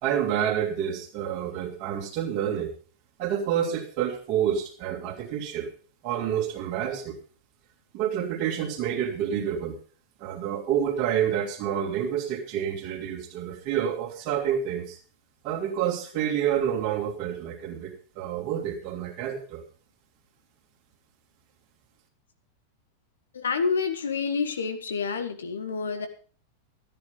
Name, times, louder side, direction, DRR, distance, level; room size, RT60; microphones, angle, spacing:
voice 1, 0.0-2.7 3.2-5.7 6.0-7.2 7.9-9.8 10.2-15.0 15.4-19.6, right 9 dB, 45° right, 1 dB, 3.0 m, -28 dB
voice 2, 23.3-26.1, left 5 dB, 65° left, 7 dB, 1.6 m, -28 dB
13.5 x 10.0 x 5.2 m, 0.40 s
figure-of-eight pair, 90°, 0 cm